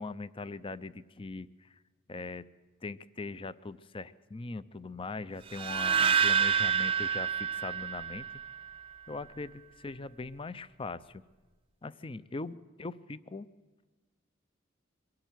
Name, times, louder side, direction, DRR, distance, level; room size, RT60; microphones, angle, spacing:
voice 1, 0.0-1.8 2.1-2.5 2.8-8.3 9.1-11.2 11.8-13.5, left 3 dB, 30° left, 16 dB, 0.6 m, -41 dB
sound 1, 5.5-8.7, right 7 dB, 30° right, 0.7 m, -28 dB
23.0 x 12.5 x 9.2 m, 1.3 s
head